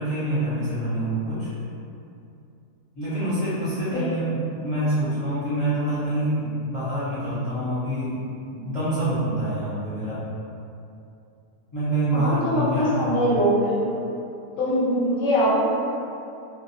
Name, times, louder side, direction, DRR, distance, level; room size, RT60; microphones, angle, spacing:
voice 1, 0.0-1.5 2.9-8.1 8.5-10.2 11.7-13.3, right 1 dB, 25° left, -14 dB, 0.8 m, -26 dB
voice 2, 3.9-4.3 12.1-14.0 14.6-15.6, equal, 65° left, -9 dB, 0.9 m, -23 dB
2.6 x 2.2 x 2.6 m, 2.6 s
omnidirectional pair, 1.7 m